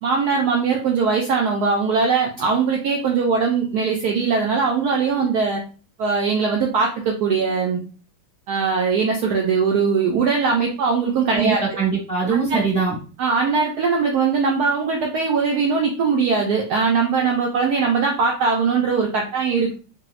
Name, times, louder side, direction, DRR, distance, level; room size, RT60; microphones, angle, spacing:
voice 1, 0.0-5.6 6.0-7.8 8.5-11.6 12.3-12.6 13.2-19.7, right 5 dB, 85° right, 1 dB, 0.8 m, -20 dB
voice 2, 11.3-13.0, right 5 dB, 5° left, -6 dB, 0.9 m, -22 dB
4.5 x 2.0 x 2.4 m, 0.37 s
omnidirectional pair, 2.2 m